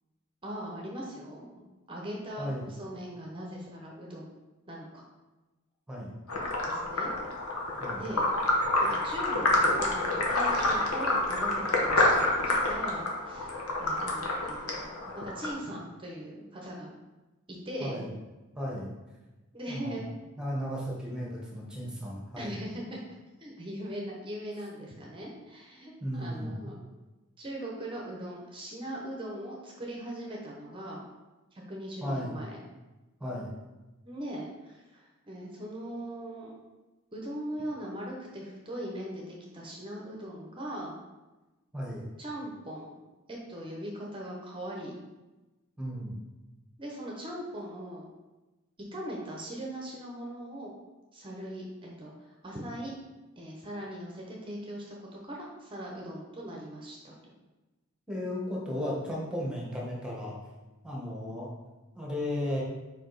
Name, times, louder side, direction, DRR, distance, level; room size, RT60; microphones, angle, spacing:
voice 1, 0.4-1.6 1.9-4.3 4.7-5.0 6.7-7.1 7.9-8.3 8.8-14.9 15.1-16.9 17.5-18.0 19.5-20.0 22.4-23.0 23.4-26.8 27.4-31.1 31.7-32.6 34.0-36.6 37.1-41.0 42.2-42.9 43.3-45.0 46.8-48.1 48.9-50.7 51.1-53.0 53.4-57.2, right 1 dB, 25° right, -2 dB, 0.8 m, -40 dB
sound 1, 6.3-15.6, left 2 dB, 85° left, 1.1 m, -28 dB
voice 2, 18.5-18.9 19.7-20.0 20.4-22.5 26.0-26.7 32.0-32.4 33.2-33.6 41.7-42.0 45.8-46.2 58.1-60.3 60.8-61.5 62.0-62.6, equal, 5° right, -4 dB, 1.2 m, -35 dB
5.0 x 4.9 x 4.0 m, 1.1 s
head